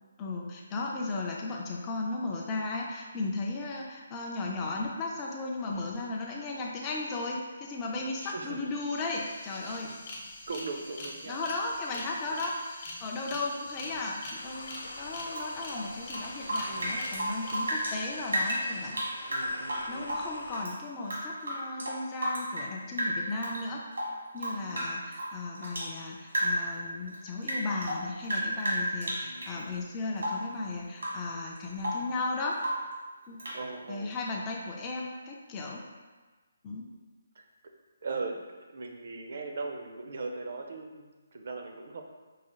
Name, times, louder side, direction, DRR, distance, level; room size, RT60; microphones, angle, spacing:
voice 1, 0.2-9.9 11.3-19.0 19.9-23.9 24.3-32.6 33.3-33.4 33.9-35.8 36.6-36.9, left 3 dB, 15° left, -2 dB, 0.4 m, -35 dB
voice 2, 8.2-8.7 9.6-10.0 10.5-11.4 11.9-12.0 16.7-17.1 19.3-20.2 24.6-25.1 29.2-29.8 33.5-34.1 37.4-37.5 38.0-42.0, right 3 dB, 55° right, 3 dB, 0.5 m, -40 dB
sound 1, 8.4-8.5 8.6-19.5, left 1 dB, 35° left, 0.8 m, -45 dB
sound 2, 14.3-20.6, left 2 dB, 75° left, 0.5 m, -45 dB
Rain / Drip, 15.3-18.0 18.3-20.7 21.0-22.7 23.0-23.6 23.9-25.9 26.3-26.7 27.1-29.6 30.2-30.5 31.0-31.3 31.6-32.1 32.6-32.9 33.4-33.6, equal, 90° right, 1.3 m, -33 dB
4.7 x 2.4 x 3.0 m, 1.3 s
hypercardioid pair, 160°, 0 cm